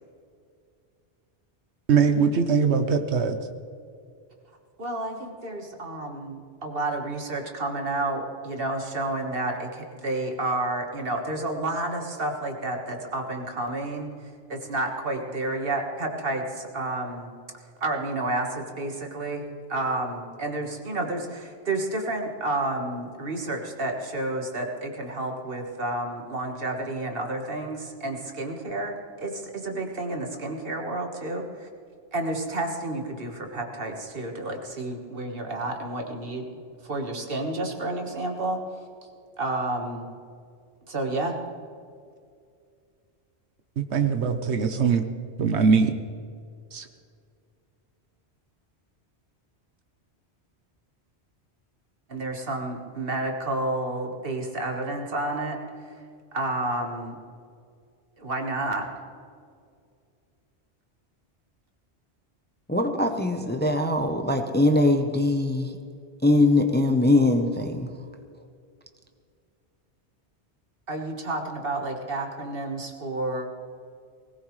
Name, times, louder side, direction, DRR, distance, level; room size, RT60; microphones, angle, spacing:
voice 1, 1.9-3.4 43.8-45.0 45.4-45.9 46.7-46.9, right 5 dB, 75° right, 7 dB, 1.1 m, -21 dB
voice 2, 4.8-14.1 14.5-17.3 17.8-31.7 32.1-36.5 36.8-38.6 39.4-40.1 40.9-41.4 52.1-55.6 55.9-56.0 56.3-57.2 58.2-58.9 70.9-73.5, right 2 dB, 55° right, 3 dB, 1.7 m, -30 dB
voice 3, 62.7-65.7 66.2-67.9, left 2 dB, 10° left, 5 dB, 0.7 m, -22 dB
20.0 x 18.0 x 3.2 m, 2.3 s
omnidirectional pair, 1.1 m